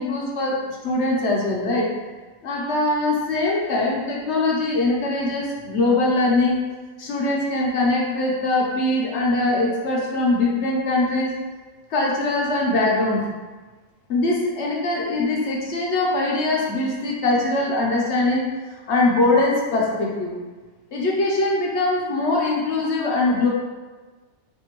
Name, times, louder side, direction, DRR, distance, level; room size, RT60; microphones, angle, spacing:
voice 1, 0.0-1.9 2.4-6.6 7.0-11.3 11.9-13.3 14.1-18.5 18.9-20.4 20.9-23.5, left 2 dB, 60° left, -3 dB, 0.9 m, -22 dB
4.4 x 2.6 x 2.9 m, 1.3 s
omnidirectional pair, 1.5 m